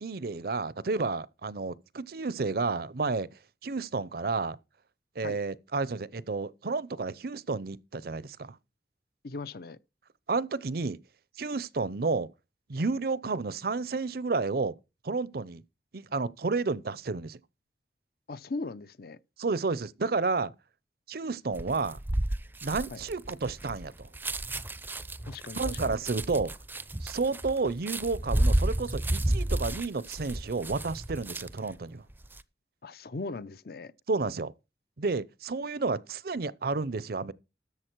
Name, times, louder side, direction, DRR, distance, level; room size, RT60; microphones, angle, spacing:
voice 1, 0.0-3.3 3.6-4.6 5.2-8.6 10.3-11.0 11.4-12.3 12.7-14.7 15.0-15.6 15.9-17.4 19.4-20.5 21.1-22.0 22.6-24.1 25.6-26.5 27.0-32.0 34.1-34.5 35.0-37.3, right 4 dB, 60° right, 0.6 m, -31 dB
voice 2, 9.2-9.8 18.3-19.2 22.9-23.0 25.2-26.0 32.8-33.9, left 3 dB, 60° left, 0.7 m, -38 dB
sound 1, 21.5-31.7 32.1-32.4, right 1 dB, 10° right, 0.5 m, -31 dB
13.0 x 8.2 x 4.6 m
head